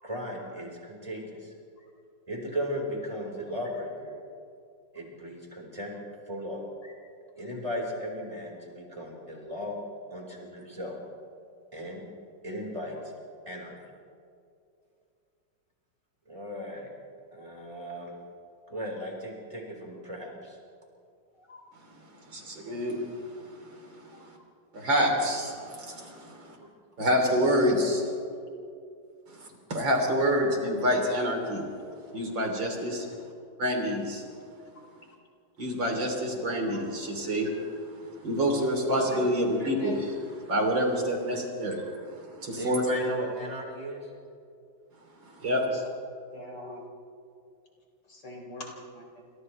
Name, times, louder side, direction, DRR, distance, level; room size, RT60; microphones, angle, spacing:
voice 1, 0.0-1.5 2.3-4.2 4.9-5.9 6.3-6.6 7.4-9.8 10.1-11.0 11.7-12.0 12.4-13.0 13.5-13.7 16.3-16.9 17.3-18.1 18.7-20.6 26.6-26.7 28.3-28.4 42.5-44.1, equal, 15° right, -2 dB, 5.0 m, -36 dB
voice 2, 22.3-23.1 23.5-24.3 24.7-26.6 27.0-28.1 29.3-31.7 32.1-33.1 33.6-34.2 35.6-37.5 38.2-40.1 40.4-42.9 45.4-45.7, equal, 90° right, 1 dB, 4.2 m, -27 dB
voice 3, 38.9-40.0 45.6-45.8 46.3-46.8 48.1-49.2, left 1 dB, 70° left, 0 dB, 4.3 m, -40 dB
29.5 x 26.5 x 3.4 m, 2.4 s
omnidirectional pair, 2.0 m